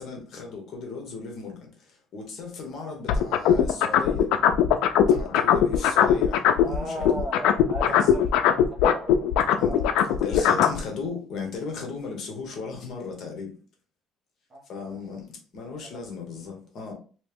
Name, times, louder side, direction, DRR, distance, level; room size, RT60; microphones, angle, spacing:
voice 1, 0.0-4.3 5.1-7.2 7.9-8.1 9.1-9.2 9.6-13.6 14.7-16.9, left 4 dB, 45° left, 1.0 m, -36 dB
sound 1, 3.1-6.8 7.0-10.8, left 9 dB, 85° left, 0.4 m, -19 dB
voice 2, 6.6-9.9 14.5-15.0 15.8-16.0, right 1 dB, 25° right, 0.9 m, -37 dB
3.1 x 2.8 x 3.4 m
cardioid pair, 170°, 0 cm